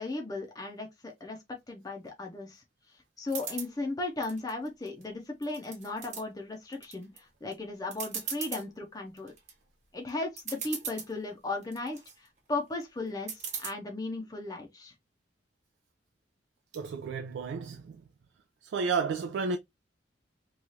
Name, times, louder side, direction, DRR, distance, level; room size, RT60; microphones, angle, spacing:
voice 1, 0.0-1.4 1.7-2.6 3.2-9.3 9.9-14.9, left 2 dB, 20° left, 0.5 m, -36 dB
sound 1, 3.3-3.7 4.2-5.0 5.4-6.2 6.7-7.2 7.5-7.6 7.9-8.6 9.2-9.5 10.1-10.2 10.4-11.1 11.6-12.1 13.3-13.7, right 6 dB, 40° right, 0.9 m, -38 dB
voice 2, 16.7-18.0 18.6-19.6, right 5 dB, 85° right, 0.3 m, -32 dB
3.1 x 2.3 x 2.7 m
head